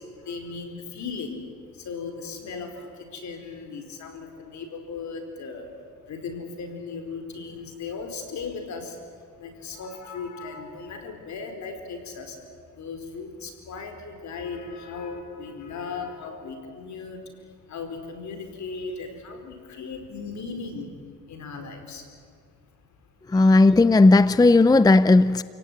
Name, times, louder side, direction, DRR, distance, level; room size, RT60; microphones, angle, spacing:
voice 1, 0.0-22.1 23.3-23.8, left 4 dB, 70° left, 4.8 m, -37 dB
voice 2, 23.3-25.4, left 2 dB, 15° left, 0.6 m, -15 dB
28.5 x 18.0 x 9.4 m
cardioid pair, 90°, 30 cm